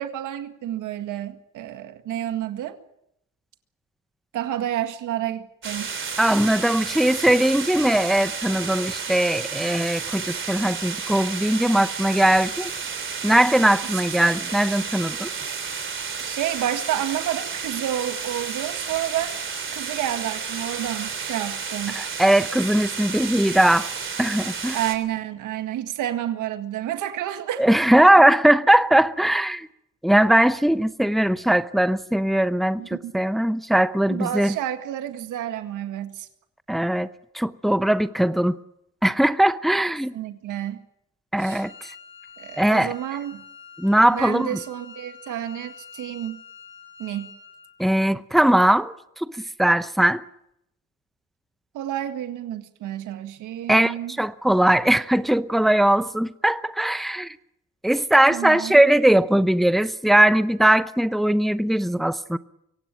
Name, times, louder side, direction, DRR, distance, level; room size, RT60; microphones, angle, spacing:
voice 1, 0.0-2.8 4.3-6.4 13.8-14.0 16.2-19.4 19.7-22.0 24.7-27.6 28.2-28.3 32.8-33.1 34.1-36.3 40.1-40.8 41.4-41.6 42.4-43.4 44.1-46.4 47.0-47.4 51.7-54.2 58.3-58.9, right 12 dB, 90° right, 1.9 m, -30 dB
sound 1, 5.6-25.0, right 6 dB, 40° right, 3.2 m, -32 dB
voice 2, 6.2-12.7 13.2-15.3 22.0-23.9 24.2-24.8 27.6-29.7 30.0-34.6 36.7-37.1 37.3-38.6 39.0-40.1 41.3-41.7 42.6-42.9 43.8-44.6 47.8-49.3 49.6-50.2 53.7-57.4 57.8-62.4, right 1 dB, ahead, 0.8 m, -20 dB
Wind instrument woodwind instrument, 41.5-47.8, left 6 dB, 40° left, 6.1 m, -46 dB
24.0 x 17.0 x 9.0 m
cardioid pair, 90°, 30 cm